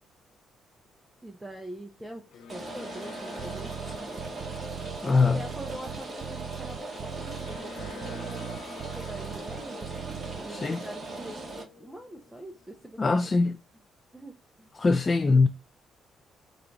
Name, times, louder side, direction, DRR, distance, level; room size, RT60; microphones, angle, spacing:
voice 1, 1.2-4.4 5.3-9.9 10.3-13.3 14.1-14.7, right 1 dB, 5° right, 0.7 m, -44 dB
sound 1, 2.0-12.9, left 5 dB, 75° left, 0.6 m, -50 dB
Rain, 2.5-11.6, right 2 dB, 40° right, 1.7 m, -39 dB
sound 2, 3.4-10.4, right 9 dB, 65° right, 0.4 m, -39 dB
voice 2, 5.0-5.4 10.5-10.8 13.0-13.6 14.8-15.5, left 3 dB, 30° left, 0.3 m, -22 dB
4.9 x 2.6 x 2.9 m
cardioid pair, 90°, 0 cm